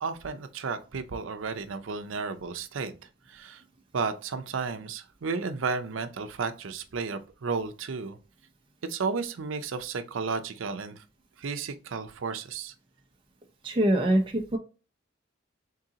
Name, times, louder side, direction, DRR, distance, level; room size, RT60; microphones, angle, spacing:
voice 1, 0.0-2.9 3.3-3.6 3.9-8.2 8.8-11.0 11.4-12.7, right 4 dB, 75° right, 0.5 m, -33 dB
voice 2, 13.6-14.6, right 1 dB, 25° right, 0.5 m, -24 dB
3.7 x 3.7 x 2.8 m
head